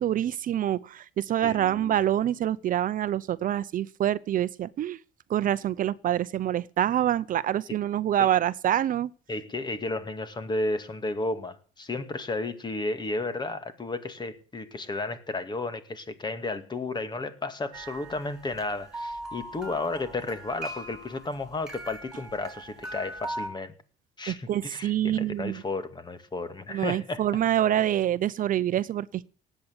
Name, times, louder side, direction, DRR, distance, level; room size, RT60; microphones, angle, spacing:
voice 1, 0.0-5.0 5.3-9.1 24.3-25.6 26.7-29.3, right 11 dB, 55° right, 0.7 m, -26 dB
voice 2, 1.4-2.0 8.2-8.3 9.3-23.7 24.2-27.2, left 2 dB, 25° left, 2.2 m, -33 dB
sound 1, 17.7-23.5, right 1 dB, 5° right, 7.7 m, -40 dB
19.0 x 8.5 x 8.2 m
cardioid pair, 110°, 17 cm